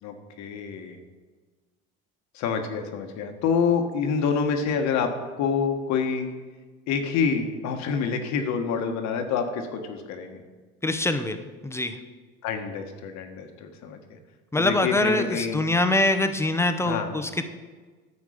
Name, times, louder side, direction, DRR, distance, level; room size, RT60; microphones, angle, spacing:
voice 1, 0.0-1.0 2.3-6.3 6.9-10.4 12.4-14.0 14.6-15.6 16.8-17.1, left 6 dB, 65° left, 5 dB, 1.2 m, -27 dB
voice 2, 10.8-12.0 14.5-17.5, left 2 dB, 10° left, 8 dB, 0.7 m, -24 dB
9.8 x 7.1 x 5.0 m, 1.4 s
supercardioid pair, 95°, 30 cm